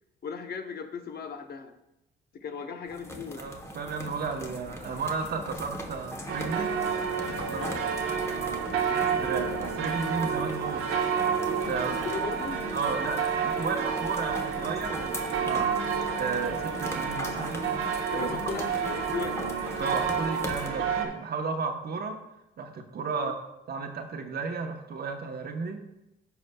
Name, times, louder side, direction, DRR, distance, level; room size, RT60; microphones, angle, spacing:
voice 1, 0.2-1.7 2.3-3.4 7.5-7.8 12.0-12.6 18.1-19.5 23.1-23.3, left 5 dB, 50° left, 6 dB, 0.8 m, -37 dB
sound 1, 2.8-20.7, left 1 dB, 15° left, 1.0 m, -40 dB
voice 2, 3.4-6.7 7.2-7.7 8.0-10.8 11.5-12.1 12.7-15.7 16.2-17.6 18.1-18.4 19.8-22.2 22.6-23.3 23.7-25.8, right 4 dB, 55° right, 4 dB, 1.0 m, -33 dB
sound 2, 6.3-21.1, right 6 dB, 85° right, 0.9 m, -30 dB
14.0 x 4.8 x 2.3 m, 0.90 s
cardioid pair, 90°, 20 cm